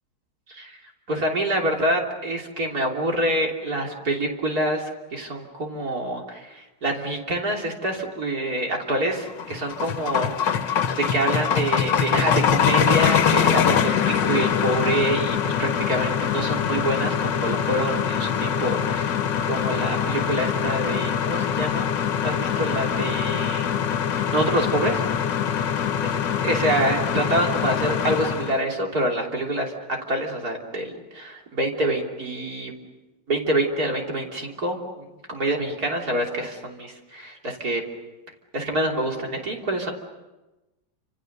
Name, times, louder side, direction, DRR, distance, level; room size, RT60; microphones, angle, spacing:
voice 1, 1.1-19.2 19.4-21.9 22.2-23.7 24.3-25.0 25.6-25.8 26.0-29.7 30.1-32.7 33.3-37.8 38.5-39.9, right 1 dB, 55° right, 0 dB, 3.7 m, -26 dB
sound 1, 9.2-28.6, left 8 dB, 85° left, 1.8 m, -23 dB
29.5 x 27.5 x 6.7 m, 1.1 s
omnidirectional pair, 1.9 m